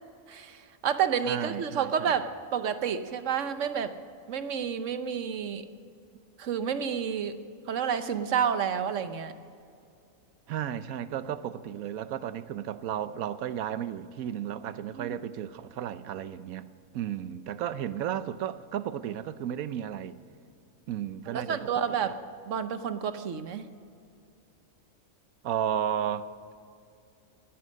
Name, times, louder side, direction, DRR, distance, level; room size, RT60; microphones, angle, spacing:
voice 1, 0.3-3.9 4.3-5.6 6.4-7.3 7.7-9.3 14.9-15.2 21.3-22.2 22.5-23.6, right 7 dB, 65° right, 1.2 m, -30 dB
voice 2, 1.3-2.2 10.5-16.7 16.9-20.2 20.9-21.6 22.0-22.1 25.4-26.5, right 10 dB, 90° right, 1.1 m, -33 dB
19.0 x 10.5 x 6.5 m
omnidirectional pair, 1.4 m